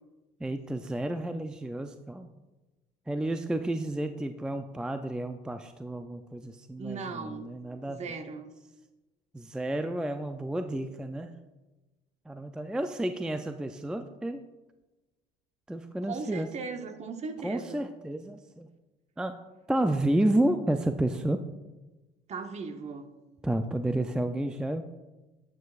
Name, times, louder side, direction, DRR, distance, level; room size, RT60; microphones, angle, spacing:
voice 1, 0.4-2.3 3.1-8.0 9.3-11.3 12.3-14.4 15.7-16.5 17.4-18.7 19.2-19.4 19.7-21.4 23.4-24.8, right 1 dB, 5° right, 8 dB, 0.4 m, -31 dB
voice 2, 6.8-7.5 7.8-8.5 16.0-17.9 22.3-23.1, right 4 dB, 40° right, 7 dB, 0.9 m, -38 dB
9.1 x 8.5 x 2.4 m, 1.1 s
supercardioid pair, 90°, 18 cm